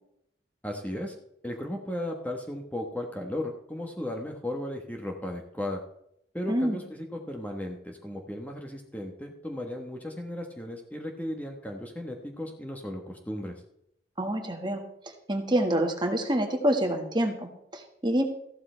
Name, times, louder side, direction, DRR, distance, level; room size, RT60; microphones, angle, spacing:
voice 1, 0.6-1.1 1.4-5.8 6.3-13.6, left 1 dB, 10° left, 2 dB, 1.2 m, -35 dB
voice 2, 6.5-6.8 14.2-14.8 15.3-18.2, right 1 dB, 25° right, 4 dB, 1.7 m, -27 dB
14.5 x 12.0 x 3.4 m, 0.75 s
head